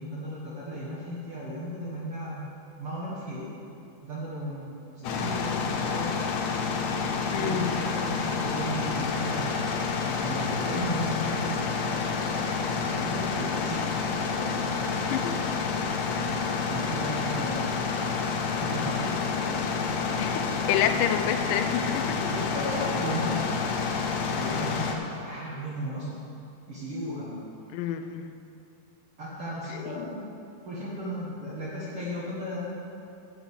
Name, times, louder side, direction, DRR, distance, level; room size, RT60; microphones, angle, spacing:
voice 1, 0.0-2.5 2.8-3.6 4.0-6.2 7.3-9.6 10.0-13.8 14.1-15.0 15.3-15.6 16.1-17.9 18.5-21.0 22.3-23.5 24.3-26.1 26.7-27.4 29.2-30.2 30.6-32.7, equal, 50° right, -7 dB, 2.0 m, -36 dB
sound 1, 5.0-25.0, left 5 dB, 65° left, 2.0 m, -29 dB
voice 2, 7.3-7.8 15.1-15.3 20.2-22.3 27.7-28.3 29.9-30.1, left 9 dB, 80° left, 8 dB, 2.3 m, -28 dB
11.5 x 6.5 x 8.1 m, 2.7 s
omnidirectional pair, 3.9 m